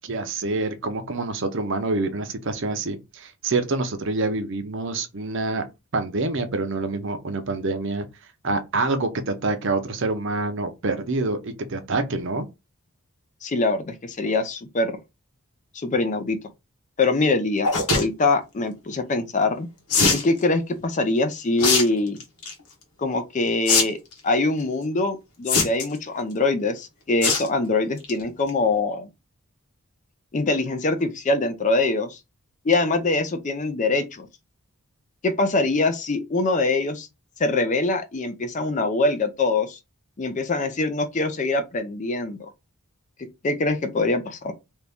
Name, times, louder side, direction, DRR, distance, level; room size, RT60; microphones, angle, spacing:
voice 1, 0.0-5.6 5.9-8.1 8.4-12.5, right 3 dB, 55° right, 0.6 m, -26 dB
voice 2, 13.4-15.0 15.7-16.4 17.0-19.7 20.1-22.2 23.0-24.0 24.2-29.1 30.3-32.2 32.6-34.3 35.2-37.1 37.4-39.8 40.2-42.5 43.4-44.5, left 3 dB, 35° left, 0.5 m, -23 dB
sound 1, 17.6-18.0 19.9-20.3 21.6-21.8 22.2-22.5 23.7-23.8 24.1-24.2 25.5-26.0 27.2-27.5 27.9-28.1 28.5-28.6 28.8-28.9, left 4 dB, 85° left, 1.2 m, -20 dB
2.9 x 2.7 x 3.5 m
head